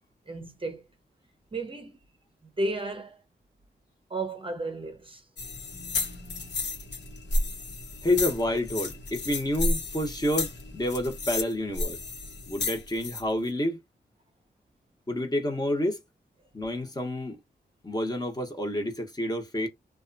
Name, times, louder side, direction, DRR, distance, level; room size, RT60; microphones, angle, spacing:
voice 1, 0.3-0.8 1.5-2.0 2.4-3.2 4.1-5.3, right 2 dB, 30° right, 0.7 m, -33 dB
sound 1, 5.4-13.2, left 2 dB, 75° left, 1.0 m, -32 dB
voice 2, 8.0-12.0 12.5-13.8 15.1-16.0 16.5-17.4 17.8-19.7, left 1 dB, 20° left, 1.0 m, -29 dB
2.8 x 2.3 x 2.6 m
wide cardioid pair, 95°, 18 cm